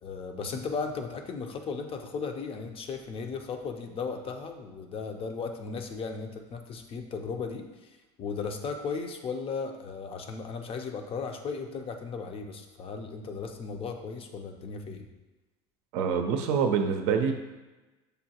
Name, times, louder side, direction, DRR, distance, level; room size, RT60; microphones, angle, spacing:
voice 1, 0.0-15.1, left 5 dB, 40° left, 5 dB, 0.5 m, -36 dB
voice 2, 15.9-17.3, right 6 dB, 65° right, 5 dB, 0.5 m, -26 dB
6.6 x 2.2 x 2.8 m, 1.1 s
supercardioid pair, 90°, 15 cm